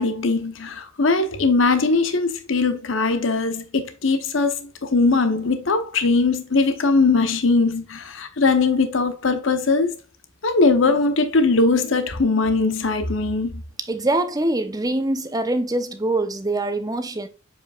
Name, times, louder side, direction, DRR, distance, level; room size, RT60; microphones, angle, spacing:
voice 1, 0.0-10.0 10.4-13.6, left 3 dB, 70° left, 0.9 m, -20 dB
voice 2, 13.8-17.3, right 2 dB, 20° right, 0.8 m, -24 dB
7.1 x 5.4 x 2.4 m
head